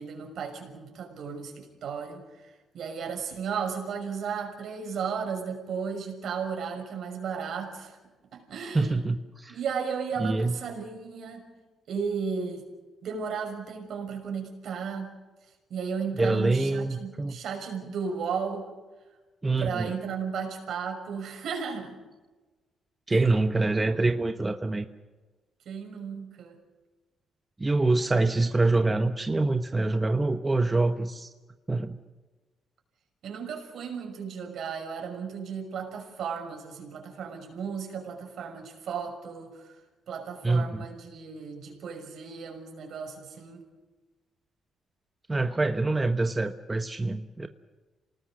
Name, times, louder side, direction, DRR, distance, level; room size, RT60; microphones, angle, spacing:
voice 1, 0.0-8.0 8.3-9.0 9.5-11.4 11.9-12.6 13.0-15.1 15.7-18.7 19.6-22.0 23.1-23.2 25.7-26.6 33.2-39.7 40.1-43.6, right 6 dB, 70° right, 3 dB, 6.0 m, -34 dB
voice 2, 8.7-9.6 10.2-10.5 16.2-17.4 19.4-19.9 23.1-24.8 27.6-31.3 31.7-32.0 40.4-40.9 45.3-47.5, right 2 dB, 20° right, 8 dB, 1.0 m, -25 dB
27.5 x 19.0 x 6.5 m, 1.2 s
cardioid pair, 90°, 0 cm